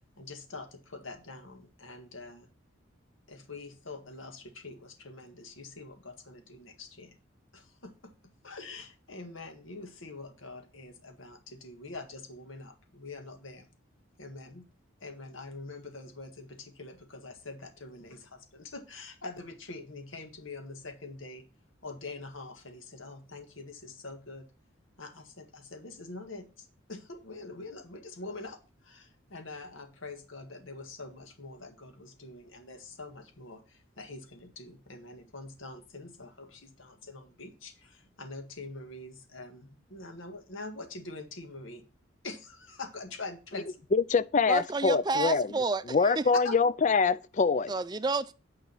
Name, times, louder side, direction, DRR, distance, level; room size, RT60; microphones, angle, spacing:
voice 1, 0.2-2.5 3.3-7.2 7.5-13.7 14.2-14.7 15.0-21.5 21.8-24.5 25.0-41.9 42.2-43.8 46.4-46.5, left 3 dB, 75° left, 1.8 m, -45 dB
voice 2, 43.9-45.5 45.9-47.7, left 4 dB, 35° left, 0.4 m, -24 dB
voice 3, 44.5-46.3 47.7-48.3, right 3 dB, 20° right, 0.4 m, -30 dB
9.4 x 5.1 x 5.6 m
head